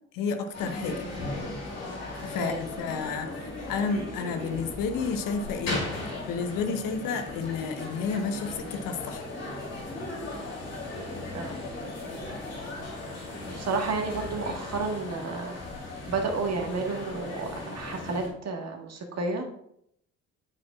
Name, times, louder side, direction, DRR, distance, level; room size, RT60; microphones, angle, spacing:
voice 1, 0.1-1.1 2.2-5.8 6.3-9.3, left 5 dB, 60° left, 7 dB, 1.0 m, -31 dB
sound 1, 0.5-18.3, left 2 dB, 85° left, 3.4 m, -37 dB
voice 2, 13.5-15.6 16.1-19.4, right 3 dB, 40° right, 3 dB, 1.6 m, -31 dB
8.7 x 8.0 x 2.4 m, 0.72 s
figure-of-eight pair, 50°, 38 cm